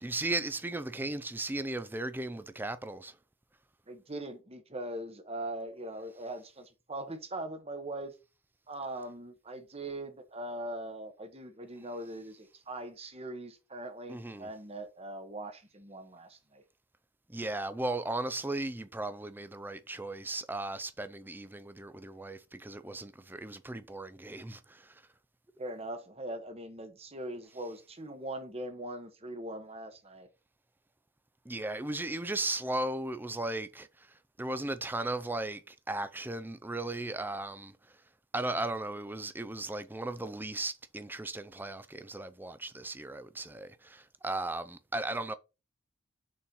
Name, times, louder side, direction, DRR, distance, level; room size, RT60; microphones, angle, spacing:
voice 1, 0.0-3.2 14.1-14.5 17.3-24.9 31.5-33.9 34.4-37.8 38.3-45.3, right 2 dB, 10° right, 0.5 m, -36 dB
voice 2, 3.9-8.1 8.7-16.6 25.6-30.3, right 1 dB, 30° right, 1.1 m, -41 dB
6.5 x 4.3 x 5.3 m
head